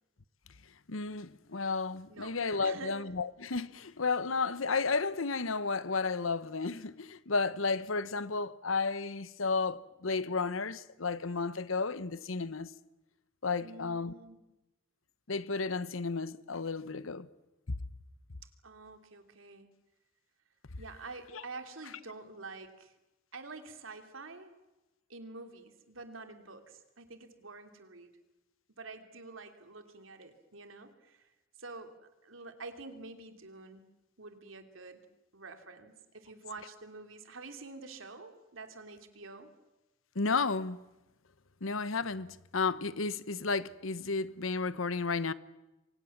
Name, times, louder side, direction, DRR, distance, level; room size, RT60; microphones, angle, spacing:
voice 1, 0.9-12.7 13.4-14.1 15.3-17.3 17.7-17.8 21.3-21.4 40.1-40.8 41.6-45.3, left 4 dB, 90° left, 1.1 m, -32 dB
voice 2, 2.1-2.9 13.6-14.4 18.6-19.7 20.8-22.9 23.3-24.5 25.1-28.1 28.7-31.3 31.6-31.9 32.2-33.8 34.2-35.0 35.3-39.5, right 3 dB, 85° right, 3.1 m, -48 dB
28.5 x 24.0 x 7.4 m
head